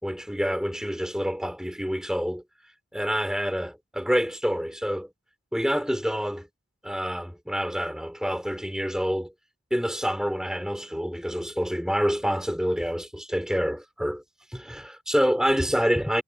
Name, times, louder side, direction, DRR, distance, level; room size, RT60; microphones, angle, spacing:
voice 1, 0.0-2.4 2.9-5.1 5.5-6.5 6.8-9.3 9.7-14.2 14.5-16.2, equal, 5° right, 5.7 m, -27 dB
head